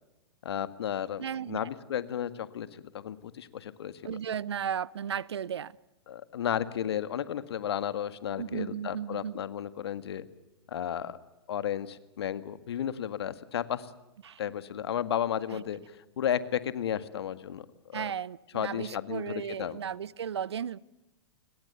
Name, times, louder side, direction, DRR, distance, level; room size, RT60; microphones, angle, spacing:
voice 1, 0.4-2.7 2.9-4.2 6.1-10.2 10.7-11.2 11.5-13.9 14.4-15.8 16.2-18.1 18.5-19.8, left 10 dB, 70° left, 1.9 m, -33 dB
voice 2, 1.2-1.7 4.0-5.8 8.4-9.4 14.2-14.4 15.5-15.6 17.9-20.8, right 8 dB, 75° right, 0.8 m, -35 dB
29.5 x 22.0 x 6.9 m
hypercardioid pair, 115°, 14 cm